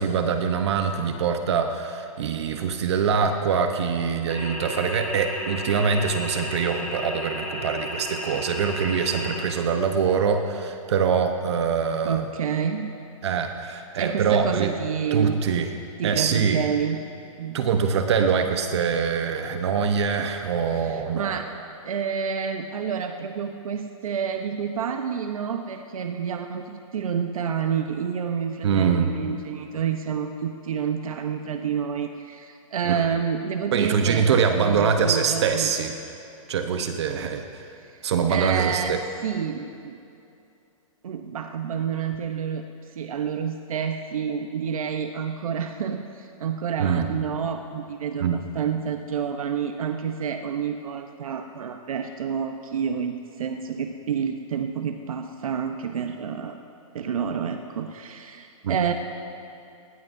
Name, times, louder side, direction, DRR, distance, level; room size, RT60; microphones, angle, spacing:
voice 1, 0.0-12.3 13.2-14.7 15.1-15.7 16.0-16.6 17.5-21.3 28.6-29.2 32.8-33.0 33.7-35.9 36.5-37.4 38.0-39.0 46.8-47.1 48.2-48.4 58.6-58.8, right 6 dB, 50° right, 6 dB, 1.0 m, -24 dB
sound 1, 4.3-9.4, equal, 5° left, 4.2 m, -33 dB
voice 2, 12.0-12.9 14.0-15.4 16.0-17.0 17.4-17.6 20.8-21.4 21.8-35.7 37.8-37.9 38.3-39.0 39.2-40.0 41.0-42.6 42.9-56.6 56.9-58.9, right 7 dB, 80° right, 5 dB, 0.9 m, -29 dB
19.0 x 19.0 x 2.7 m, 2.6 s
hypercardioid pair, 165°, 18 cm